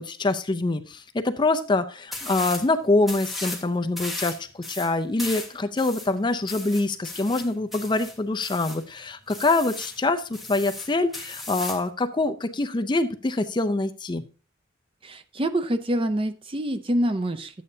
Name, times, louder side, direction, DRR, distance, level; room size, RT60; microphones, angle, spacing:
voice 1, 0.0-14.2, left 2 dB, 20° left, 9 dB, 0.4 m, -25 dB
sound 1, 2.1-2.7 3.0-3.6 4.0-8.8 9.3-10.0 10.3-11.9, left 2 dB, ahead, 1.3 m, -36 dB
voice 2, 15.0-17.6, right 1 dB, 25° right, 9 dB, 0.5 m, -26 dB
12.0 x 8.5 x 2.7 m, 0.35 s
head